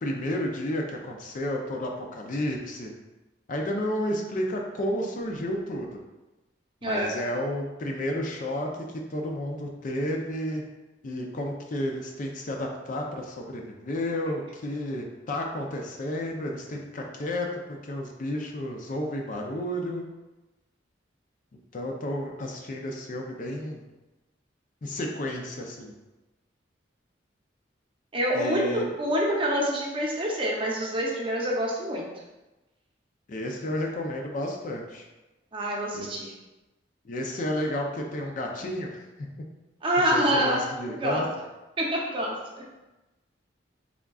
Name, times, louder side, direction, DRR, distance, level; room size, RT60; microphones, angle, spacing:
voice 1, 0.0-2.9 3.5-6.0 6.8-10.6 11.0-17.5 17.8-20.0 21.7-23.8 24.8-25.9 28.3-28.9 33.3-35.1 35.9-36.2 37.0-39.0 40.1-41.3, left 1 dB, 45° left, 1 dB, 0.4 m, -31 dB
voice 2, 6.8-7.1 28.1-32.1 35.5-36.3 39.8-41.2 41.8-42.4, equal, 30° right, -3 dB, 0.6 m, -26 dB
3.6 x 3.5 x 2.3 m, 1.1 s
head